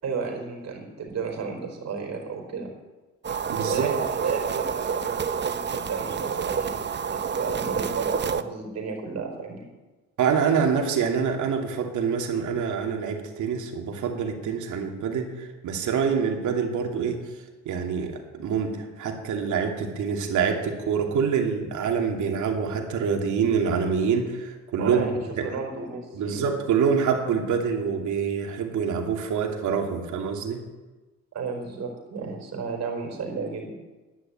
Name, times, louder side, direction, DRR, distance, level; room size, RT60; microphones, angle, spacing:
voice 1, 0.0-2.7 3.6-6.8 7.1-9.7 24.8-26.4 31.3-33.7, right 5 dB, 60° right, 2 dB, 4.5 m, -33 dB
sound 1, 3.2-8.4, right 6 dB, 35° right, 0.8 m, -28 dB
voice 2, 3.5-3.9 10.2-17.2 17.6-25.1 25.4-25.5 26.1-30.6, right 6 dB, 75° right, 2 dB, 2.6 m, -26 dB
11.0 x 11.0 x 8.6 m, 1.2 s
cardioid pair, 90°, 30 cm